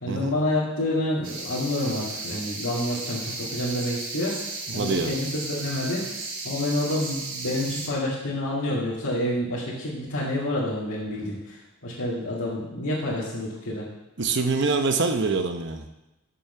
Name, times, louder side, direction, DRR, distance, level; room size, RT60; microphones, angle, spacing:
voice 1, 0.0-6.0 6.4-11.6 11.8-13.8, left 1 dB, 80° left, -10 dB, 2.4 m, -28 dB
sound 1, 1.2-7.9, right 3 dB, 85° right, 2.0 m, -35 dB
voice 2, 4.7-5.1 14.2-15.9, right 4 dB, 55° right, 6 dB, 0.8 m, -25 dB
6.9 x 6.1 x 6.8 m, 0.97 s
head